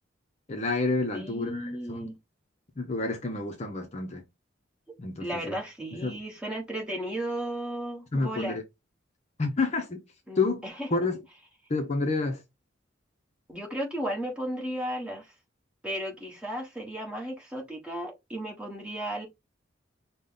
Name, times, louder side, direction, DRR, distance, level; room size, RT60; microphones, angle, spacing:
voice 1, 0.5-2.1 2.8-4.2 5.0-5.6 6.0-6.2 8.1-8.6 9.4-10.0 10.4-10.6 10.9-11.2 11.7-12.4, left 3 dB, 35° left, 0.6 m, -29 dB
voice 2, 1.1-2.2 5.2-8.6 10.3-10.9 13.5-15.3 15.8-19.3, right 1 dB, 5° right, 1.2 m, -34 dB
5.2 x 2.1 x 3.8 m
head